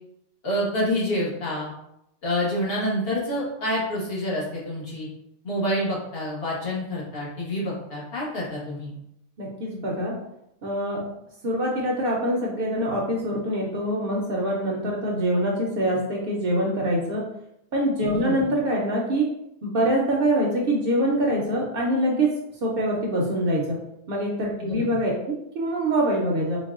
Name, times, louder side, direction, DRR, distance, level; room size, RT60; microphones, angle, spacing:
voice 1, 0.4-1.7 2.2-5.1 5.4-9.0 18.1-18.6 24.6-25.0, left 1 dB, 55° left, -5 dB, 1.1 m, -28 dB
voice 2, 9.4-10.1 10.6-11.0 11.4-17.2 17.7-19.3 19.6-22.3 22.6-23.8 24.1-26.6, right 1 dB, 60° right, -2 dB, 0.7 m, -24 dB
4.0 x 2.1 x 2.3 m, 0.81 s
omnidirectional pair, 1.2 m